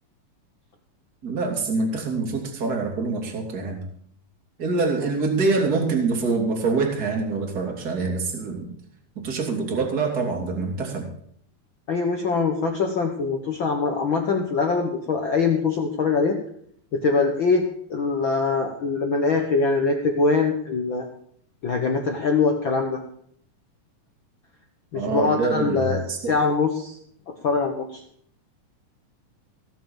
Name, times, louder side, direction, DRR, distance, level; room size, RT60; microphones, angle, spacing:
voice 1, 1.2-3.8 4.6-8.7 9.2-11.1 24.9-26.3, right 3 dB, 25° right, 1 dB, 2.9 m, -25 dB
voice 2, 11.9-16.4 16.9-17.6 17.9-21.1 21.6-23.0 24.9-26.9 27.4-28.0, left 4 dB, 85° left, 3 dB, 1.0 m, -23 dB
17.5 x 7.1 x 7.3 m, 0.65 s
omnidirectional pair, 4.3 m